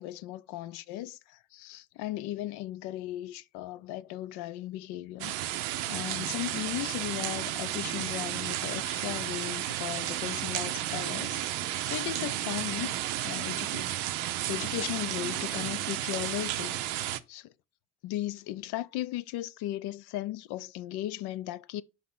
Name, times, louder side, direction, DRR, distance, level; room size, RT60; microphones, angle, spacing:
voice 1, 0.0-5.3 5.9-13.9 14.5-16.8 17.3-17.5 18.0-21.8, left 14 dB, 60° left, 0.5 m, -37 dB
sound 1, 5.2-17.2, right 13 dB, 70° right, 0.6 m, -33 dB
5.7 x 3.3 x 5.5 m
figure-of-eight pair, 45°, 45 cm